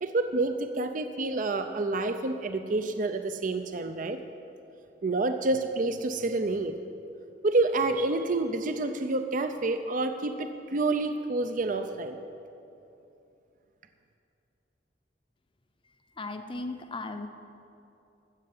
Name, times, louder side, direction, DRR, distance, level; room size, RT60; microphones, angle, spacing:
voice 1, 0.0-4.2 5.0-6.8 7.4-12.2, right 2 dB, 45° right, 8 dB, 0.6 m, -28 dB
voice 2, 16.2-17.3, left 2 dB, 30° left, 6 dB, 0.7 m, -36 dB
13.0 x 7.8 x 7.7 m, 2.7 s
head